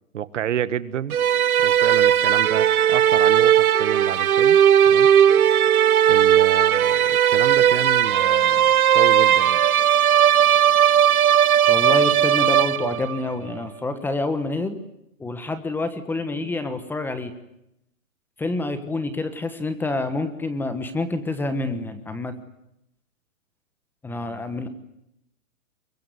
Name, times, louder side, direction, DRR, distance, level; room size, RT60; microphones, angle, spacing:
voice 1, 0.1-1.2 1.6-4.6 4.9-5.1 6.1-9.6, right 10 dB, 60° right, 16 dB, 1.5 m, -29 dB
sound 1, 1.1-13.2, right 10 dB, 90° right, 1.1 m, -17 dB
voice 2, 11.7-14.8 15.2-17.3 18.4-22.3 24.0-24.7, left 2 dB, 5° left, 10 dB, 1.2 m, -27 dB
24.5 x 23.0 x 9.6 m, 0.81 s
hypercardioid pair, 160°, 42 cm